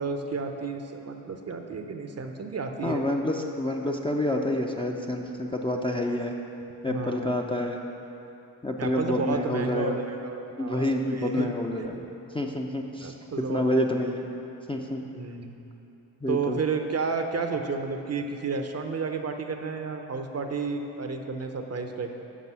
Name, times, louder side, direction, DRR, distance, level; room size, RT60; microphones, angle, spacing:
voice 1, 0.0-3.0 6.9-7.4 8.8-11.5 13.0-14.0 15.1-15.6 16.3-22.2, right 4 dB, 35° right, 5 dB, 0.6 m, -32 dB
voice 2, 2.8-6.4 6.8-7.8 8.6-10.0 10.6-12.0 12.3-14.3 14.7-15.0 16.2-16.6, left 1 dB, 10° left, 0 dB, 0.5 m, -28 dB
6.2 x 5.3 x 5.5 m, 2.9 s
supercardioid pair, 50°, 46 cm